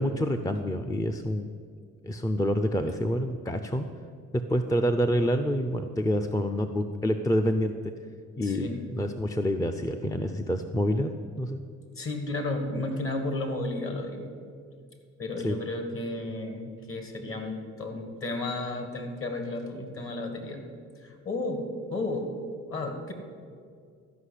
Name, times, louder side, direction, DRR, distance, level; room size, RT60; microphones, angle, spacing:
voice 1, 0.0-1.5 2.0-3.9 4.3-7.7 8.4-11.1 11.4-11.6 15.4-15.6, equal, 10° left, 6 dB, 0.5 m, -27 dB
voice 2, 8.4-8.9 12.0-14.3 15.2-20.6 21.0-22.3 22.7-23.1, left 2 dB, 45° left, 5 dB, 2.1 m, -33 dB
13.0 x 5.5 x 8.3 m, 2.2 s
cardioid pair, 90°, 30 cm